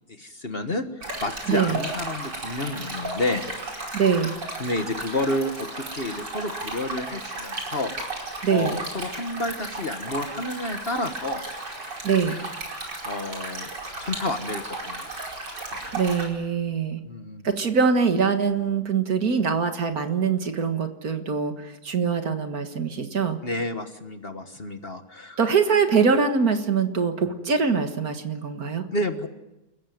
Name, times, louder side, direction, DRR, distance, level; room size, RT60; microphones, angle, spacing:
voice 1, 0.2-3.5 4.6-7.9 8.5-11.4 12.8-13.7 14.0-15.1 17.0-17.4 23.4-25.4 28.9-29.3, left 2 dB, 35° left, 7 dB, 1.5 m, -30 dB
Stream, 1.0-16.2, right 2 dB, 75° right, 5.7 m, -34 dB
voice 2, 1.5-1.8 3.9-4.3 8.4-8.8 12.0-12.4 15.9-17.0 17.4-23.4 25.4-28.8, right 5 dB, 60° right, 7 dB, 2.1 m, -23 dB
28.5 x 15.0 x 9.4 m, 0.98 s
omnidirectional pair, 1.8 m